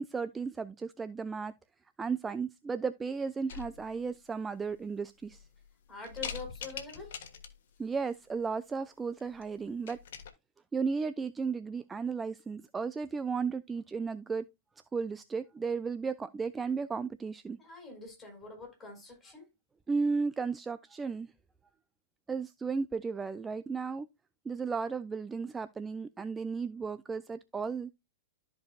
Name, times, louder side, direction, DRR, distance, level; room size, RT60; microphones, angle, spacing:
voice 1, 0.0-1.5 2.0-5.5 7.8-10.0 10.7-14.4 14.9-17.6 19.9-21.3 22.3-24.1 24.5-27.9, right 5 dB, 15° right, 0.4 m, -34 dB
sound 1, 3.5-4.1 4.7-4.8 5.2-5.7 6.0-7.8 9.2-9.4 9.7-10.3, left 7 dB, 60° left, 1.4 m, -43 dB
voice 2, 5.9-7.1 17.6-19.5, left 3 dB, 15° left, 5.3 m, -45 dB
14.0 x 4.8 x 2.3 m
figure-of-eight pair, 100°, 0 cm